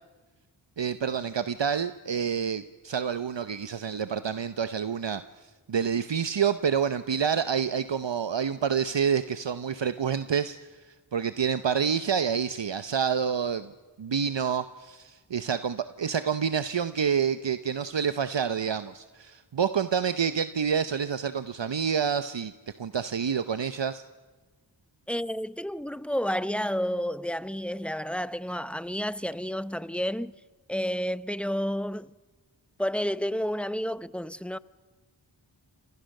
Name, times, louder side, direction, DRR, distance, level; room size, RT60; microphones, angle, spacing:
voice 1, 0.8-5.2 5.7-13.7 14.0-22.5 22.8-24.0, right 7 dB, 70° right, 0.9 m, -28 dB
voice 2, 25.1-30.3 30.7-32.1 32.8-34.6, equal, 5° left, 0.7 m, -30 dB
29.0 x 28.0 x 6.6 m
wide cardioid pair, 70°, 45 cm